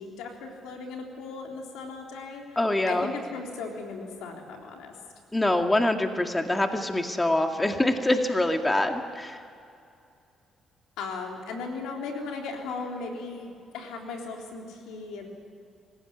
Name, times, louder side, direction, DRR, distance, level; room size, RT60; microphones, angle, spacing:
voice 1, 0.0-2.6 2.9-4.9 11.0-15.3, left 4 dB, 85° left, 1 dB, 3.7 m, -37 dB
voice 2, 2.6-3.1 5.3-9.4, left 1 dB, 15° left, 5 dB, 2.1 m, -25 dB
25.0 x 16.0 x 9.8 m, 2.5 s
supercardioid pair, 70°, 0 cm